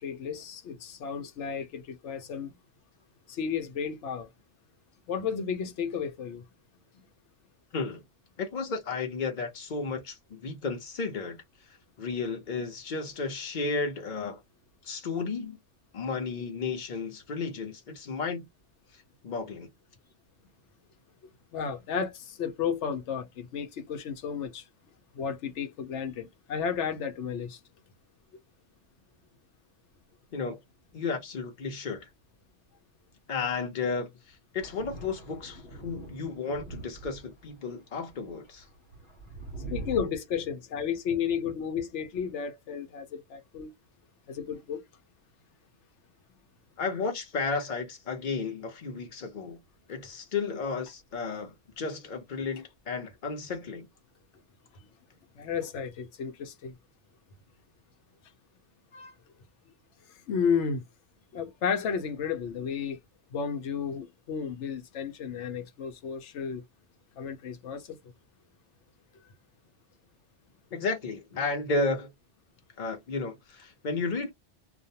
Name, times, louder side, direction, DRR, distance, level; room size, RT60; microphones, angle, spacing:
voice 1, 0.0-2.5 3.3-4.3 5.1-6.4 21.5-24.7 25.1-27.6 39.7-43.7 44.3-44.8 55.3-56.7 58.9-59.1 60.3-60.8 61.3-63.0 63.3-66.6 67.2-67.9, left 7 dB, 90° left, 1.0 m, -32 dB
voice 2, 8.4-11.4 12.0-14.4 14.8-15.6 15.9-18.5 18.9-19.7 30.3-30.6 30.9-32.1 33.3-38.6 46.8-49.6 49.9-53.9 70.7-72.1 72.8-74.3, left 4 dB, 45° left, 1.0 m, -33 dB
Thunder, 34.6-37.5 38.1-40.0, right 3 dB, 65° left, 1.1 m, -43 dB
2.5 x 2.2 x 2.7 m
omnidirectional pair, 1.2 m